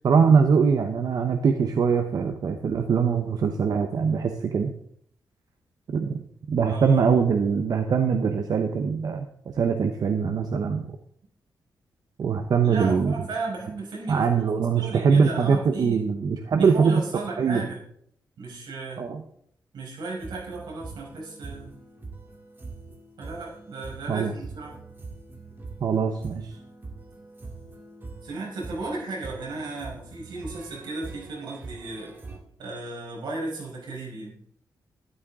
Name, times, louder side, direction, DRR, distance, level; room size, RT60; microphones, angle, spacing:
voice 1, 0.0-4.7 5.9-6.2 6.5-11.0 12.2-13.1 14.1-17.0 17.4-17.7 19.0-19.2 24.1-24.3 25.8-26.6, right 6 dB, 55° right, 6 dB, 0.9 m, -22 dB
voice 2, 6.6-7.2 12.6-16.0 16.5-17.8 18.4-19.1 19.7-21.7 23.2-24.8 28.2-32.1 32.6-34.3, right 3 dB, 85° right, -3 dB, 5.4 m, -35 dB
sound 1, 20.2-32.4, right 3 dB, 30° right, 2.2 m, -43 dB
12.5 x 12.0 x 3.7 m, 0.66 s
wide cardioid pair, 160°, 8 cm